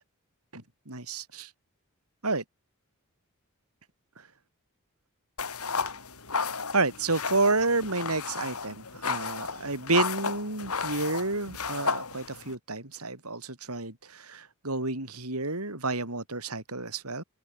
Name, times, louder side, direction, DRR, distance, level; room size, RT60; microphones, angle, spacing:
voice 1, 0.9-1.5 2.2-2.4 6.7-17.2, right 3 dB, 80° right, 5.7 m, -30 dB
sound 1, 5.4-12.6, left 5 dB, 80° left, 3.7 m, -33 dB
head